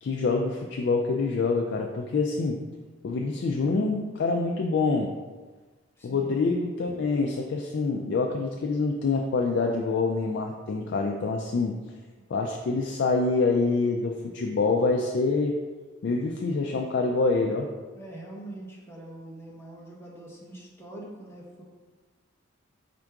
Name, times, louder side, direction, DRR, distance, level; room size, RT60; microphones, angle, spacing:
voice 1, 0.0-2.6 3.0-5.1 6.0-11.8 12.3-15.5 16.0-17.7, left 3 dB, 60° left, 1 dB, 0.3 m, -26 dB
voice 2, 6.0-6.4 12.1-12.2 17.9-21.6, right 1 dB, 10° left, -3 dB, 0.7 m, -43 dB
4.4 x 2.5 x 4.6 m, 1.3 s
head